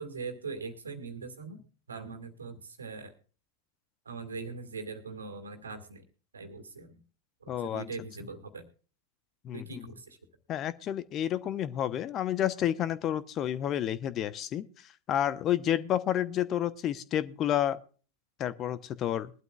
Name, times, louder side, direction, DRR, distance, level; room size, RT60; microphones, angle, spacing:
voice 1, 0.0-1.6 1.9-3.1 4.1-6.0 6.3-7.0 7.4-8.7 9.5-10.2, right 4 dB, 75° right, 8 dB, 2.2 m, -41 dB
voice 2, 7.5-7.8 9.4-9.8 10.5-14.6 15.1-17.8 18.4-19.3, left 11 dB, 30° left, 16 dB, 0.9 m, -30 dB
21.5 x 12.0 x 2.4 m, 0.38 s
figure-of-eight pair, 90°, 0 cm